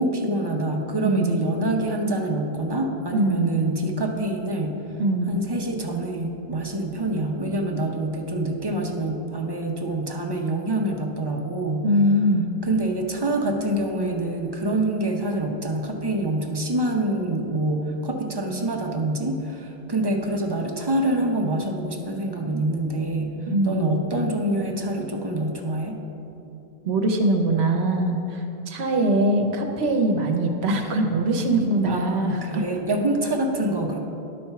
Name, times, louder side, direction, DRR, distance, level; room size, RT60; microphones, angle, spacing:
voice 1, 0.0-4.8 5.3-11.9 12.6-23.4 23.6-26.0 31.9-34.0, right 1 dB, 25° right, 2 dB, 0.6 m, -26 dB
voice 2, 1.0-1.3 3.1-3.6 5.0-5.4 11.8-12.5 23.5-24.0 26.8-32.6, right 1 dB, 70° right, 4 dB, 1.0 m, -22 dB
11.0 x 4.3 x 5.7 m, 2.9 s
omnidirectional pair, 1.2 m